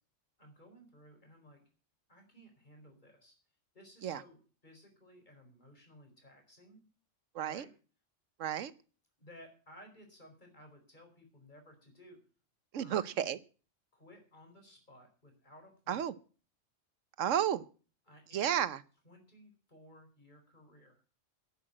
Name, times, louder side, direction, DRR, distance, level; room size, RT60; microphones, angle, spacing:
voice 1, 0.4-1.6 2.1-3.3 3.7-4.4 4.6-6.9 7.4-7.7 9.2-12.2 12.8-13.1 13.9-16.0 18.1-18.5 19.0-21.0, equal, 40° left, 4.7 m, -57 dB
voice 2, 7.3-7.6 8.4-8.7 12.7-13.4 15.9-16.1 17.2-17.6 18.3-18.8, right 10 dB, 85° right, 1.2 m, -32 dB
11.0 x 8.9 x 8.7 m
omnidirectional pair, 1.3 m